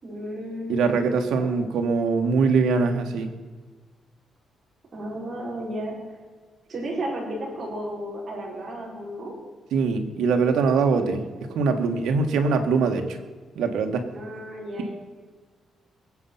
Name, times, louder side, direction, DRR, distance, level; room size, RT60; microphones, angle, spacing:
voice 1, 0.0-1.6 4.9-5.9 6.7-9.3 14.1-14.9, right 1 dB, 30° right, -3 dB, 5.4 m, -33 dB
voice 2, 0.7-3.3 9.7-11.2 11.5-13.2 13.6-14.0, right 4 dB, 85° right, 5 dB, 1.8 m, -22 dB
21.0 x 8.6 x 5.8 m, 1.5 s
cardioid pair, 145°, 0 cm